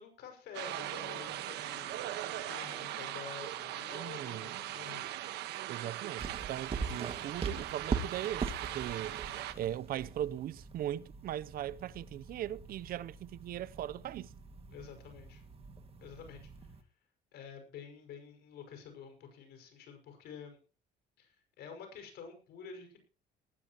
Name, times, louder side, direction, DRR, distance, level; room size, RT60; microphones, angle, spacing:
voice 1, 0.0-2.1 2.5-5.1 14.7-15.4 16.0-16.5 17.3-20.6 21.2-23.0, left 6 dB, 75° left, 5.8 m, -49 dB
sound 1, 0.5-9.5, right 14 dB, 85° right, 1.3 m, -40 dB
sound 2, 1.2-6.4, left 4 dB, 50° left, 5.4 m, -61 dB
voice 2, 3.9-4.6 5.7-9.2 9.6-14.3, right 12 dB, 60° right, 0.7 m, -39 dB
sound 3, 6.2-16.8, right 5 dB, 35° right, 2.0 m, -42 dB
19.5 x 13.0 x 3.0 m
cardioid pair, 110°, 17 cm